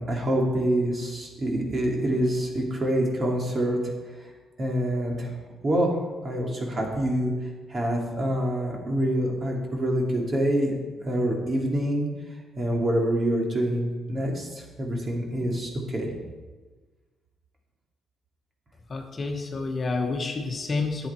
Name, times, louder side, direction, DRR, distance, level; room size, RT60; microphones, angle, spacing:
voice 1, 0.0-3.9 4.6-5.3 5.6-6.0 6.2-12.1 12.6-16.1, right 1 dB, 35° right, -1 dB, 2.5 m, -26 dB
voice 2, 18.9-21.1, left 3 dB, 40° left, 3 dB, 1.3 m, -29 dB
10.5 x 8.1 x 4.5 m, 1.3 s
cardioid pair, 90°, 0 cm